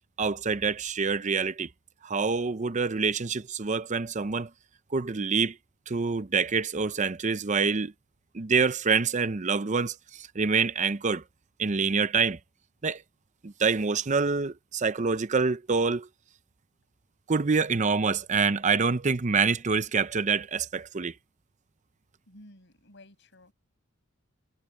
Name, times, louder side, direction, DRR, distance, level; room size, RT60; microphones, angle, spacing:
voice 1, 0.2-1.7 2.0-4.5 4.9-5.6 5.9-7.9 8.3-11.2 11.6-12.4 12.8-13.0 13.4-16.1 17.3-21.1, right 5 dB, 35° right, 0.6 m, -26 dB
voice 2, 22.3-23.5, left 1 dB, 60° left, 6.3 m, -53 dB
head